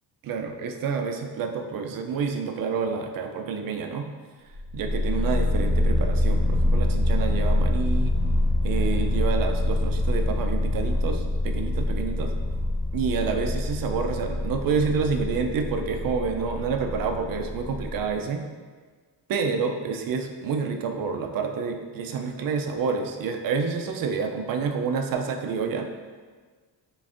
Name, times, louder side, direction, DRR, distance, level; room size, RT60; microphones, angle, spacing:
voice 1, 0.2-4.1 4.7-8.2 8.6-12.3 12.9-18.4 19.3-25.9, right 5 dB, 55° right, 5 dB, 0.5 m, -28 dB
sound 1, 4.5-18.0, left 1 dB, 25° left, 1.0 m, -25 dB
3.9 x 3.4 x 2.5 m, 1.5 s
cardioid pair, 110°, 41 cm